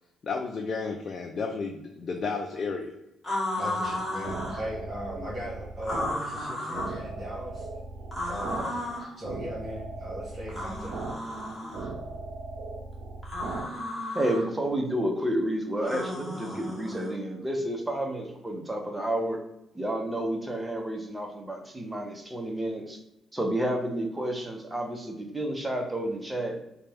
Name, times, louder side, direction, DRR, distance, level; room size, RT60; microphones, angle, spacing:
voice 1, 0.2-2.9, left 4 dB, 50° left, 2 dB, 0.4 m, -32 dB
sound 1, 3.2-4.6 5.8-7.0 8.1-9.1 10.5-11.9 13.2-14.4 15.8-17.1, left 1 dB, 10° left, 1.3 m, -33 dB
voice 2, 3.6-7.7 8.2-8.8 9.1-10.9, equal, 45° right, -7 dB, 1.4 m, -38 dB
sound 2, 3.9-13.7, right 3 dB, 75° right, 0.4 m, -38 dB
voice 3, 14.1-19.4 19.7-23.0 23.3-26.6, right 1 dB, 15° right, 3 dB, 0.7 m, -30 dB
4.0 x 2.2 x 3.4 m, 0.88 s
cardioid pair, 90°, 0 cm